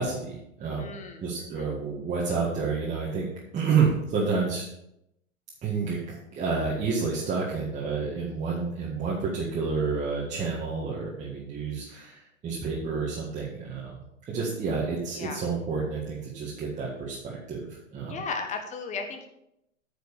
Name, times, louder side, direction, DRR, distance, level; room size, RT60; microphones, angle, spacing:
voice 1, 0.0-0.9 1.2-3.3 3.5-4.7 5.6-14.0 14.3-18.1, right 5 dB, 20° right, -5 dB, 1.8 m, -29 dB
voice 2, 0.8-1.7 15.1-15.4 18.1-19.3, left 4 dB, 20° left, 6 dB, 1.3 m, -36 dB
9.4 x 5.1 x 6.8 m, 0.82 s
hypercardioid pair, 130°, 39 cm